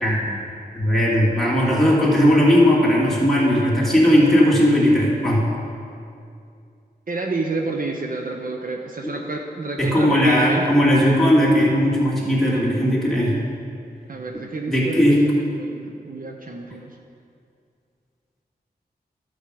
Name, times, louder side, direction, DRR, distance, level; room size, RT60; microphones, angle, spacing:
voice 1, 0.7-5.5 9.8-13.4 14.7-15.2, equal, ahead, -6 dB, 2.9 m, -17 dB
voice 2, 7.1-10.7 14.1-15.2 15.6-17.0, right 3 dB, 55° right, 2 dB, 0.8 m, -29 dB
12.0 x 7.2 x 5.2 m, 2.4 s
wide cardioid pair, 70°, 17 cm